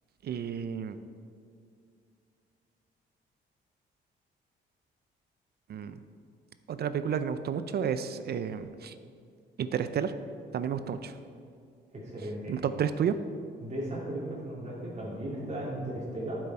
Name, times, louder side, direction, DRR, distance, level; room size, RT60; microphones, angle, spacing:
voice 1, 0.2-1.0 5.7-6.0 6.7-8.9 9.6-10.1 10.5-11.1 12.5-13.1, right 8 dB, 55° right, 11 dB, 0.5 m, -31 dB
voice 2, 11.9-12.5 13.6-16.4, right 1 dB, 35° right, -6 dB, 2.5 m, -36 dB
9.3 x 7.7 x 4.4 m, 2.3 s
cardioid pair, 90°, 20 cm